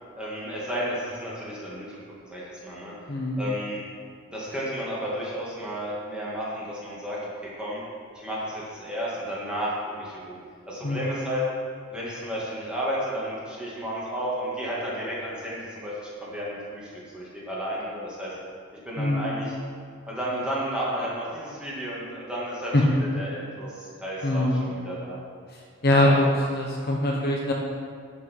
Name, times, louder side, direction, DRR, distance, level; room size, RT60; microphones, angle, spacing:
voice 1, 0.2-2.9 3.4-3.8 4.3-7.8 8.1-10.3 10.7-11.4 11.9-15.9 16.2-18.4 18.9-19.5 20.1-25.2 26.0-26.3, equal, 5° right, -7 dB, 2.2 m, -32 dB
voice 2, 3.1-3.4 10.8-11.1 19.0-19.3 22.7-22.8 24.2-24.7 25.8-26.3 26.5-27.5, left 1 dB, 45° left, -2 dB, 1.1 m, -23 dB
11.5 x 6.1 x 4.7 m, 2.1 s
head